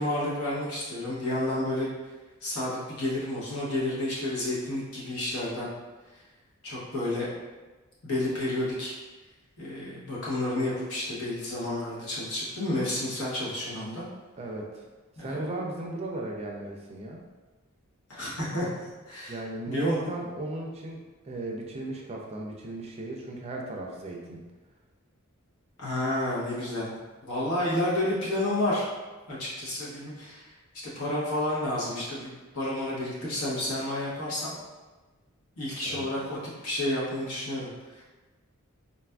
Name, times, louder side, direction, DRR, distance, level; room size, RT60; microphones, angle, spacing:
voice 1, 0.0-1.9 2.4-5.7 6.6-7.3 8.0-8.9 9.6-14.0 15.2-15.4 18.1-18.7 19.1-19.4 19.7-20.0 25.8-26.9 27.3-28.9 29.3-30.5 30.8-34.5 35.6-38.0, left 1 dB, 80° left, -6 dB, 1.0 m, -30 dB
voice 2, 14.4-14.8 15.2-17.2 19.3-21.0 21.2-24.4 35.8-36.1, right 2 dB, 30° right, 0 dB, 0.4 m, -36 dB
3.9 x 2.4 x 2.2 m, 1.2 s
head